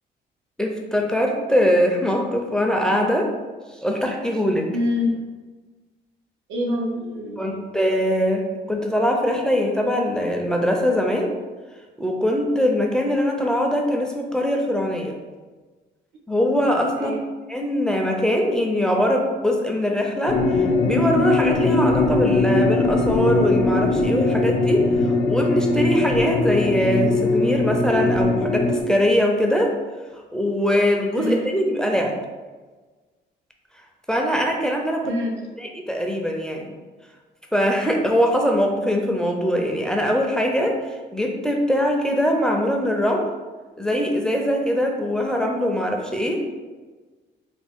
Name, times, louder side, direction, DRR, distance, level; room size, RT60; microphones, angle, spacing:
voice 1, 0.6-3.3 3.8-4.7 7.4-11.3 12.0-15.2 16.3-17.2 17.5-29.8 30.3-32.2 34.1-35.2 35.6-36.7 37.5-40.7 41.1-43.3 43.8-46.4, equal, 5° left, 1 dB, 0.4 m, -22 dB
voice 2, 4.7-5.2 6.5-7.7 16.9-17.2 31.1-31.5 35.0-35.5, left 1 dB, 85° right, 0 dB, 0.7 m, -26 dB
sound 1, 20.3-28.8, left 3 dB, 85° left, 0.6 m, -20 dB
3.4 x 2.4 x 3.5 m, 1.3 s
cardioid pair, 105°, 19 cm